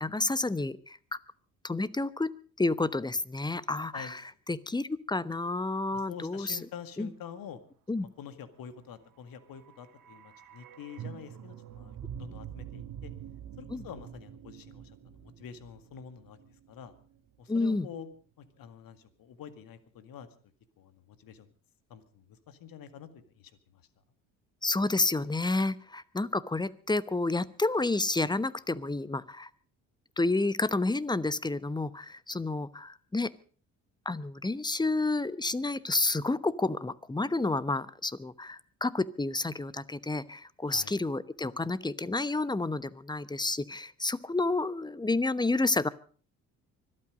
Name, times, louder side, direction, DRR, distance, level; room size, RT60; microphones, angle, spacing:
voice 1, 0.0-1.2 1.6-2.3 2.6-4.2 4.5-6.6 7.0-7.1 7.9-8.1 13.7-13.8 17.5-17.9 24.6-29.5 30.2-33.3 34.0-45.9, left 2 dB, 10° left, 18 dB, 0.9 m, -30 dB
voice 2, 5.9-7.6 8.0-13.1 13.6-16.4 16.7-16.9 17.4-18.1 18.4-20.3 20.8-21.5 21.9-23.8 40.7-41.0, left 8 dB, 60° left, 11 dB, 2.1 m, -47 dB
λόγος Timpani, 9.3-17.4 17.7-17.8, right 9 dB, 55° right, 1.8 m, -46 dB
25.0 x 8.8 x 5.1 m, 0.41 s
hypercardioid pair, 60°, 39 cm